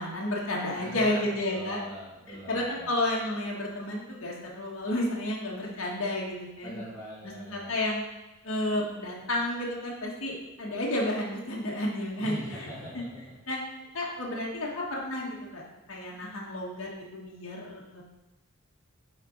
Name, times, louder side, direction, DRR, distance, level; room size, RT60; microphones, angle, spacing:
voice 1, 0.0-1.8 2.3-6.8 7.5-8.1 8.4-12.7 12.9-13.0 13.5-13.6 13.9-18.0, left 1 dB, 65° left, -3 dB, 1.4 m, -31 dB
voice 2, 0.7-2.9 6.6-7.7 12.2-13.2, equal, 15° left, -12 dB, 2.1 m, -42 dB
6.5 x 4.4 x 5.0 m, 1.0 s
head